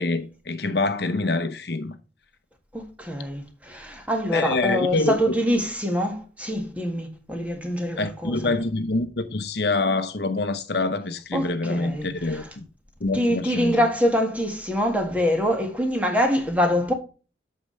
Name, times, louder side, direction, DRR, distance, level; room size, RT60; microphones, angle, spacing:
voice 1, 0.0-2.0 4.3-5.1 8.0-12.7 13.0-13.9, left 2 dB, 65° left, 0.8 m, -26 dB
voice 2, 2.7-8.5 11.3-12.4 13.1-16.9, equal, 10° right, 1.8 m, -25 dB
8.7 x 6.8 x 3.2 m
head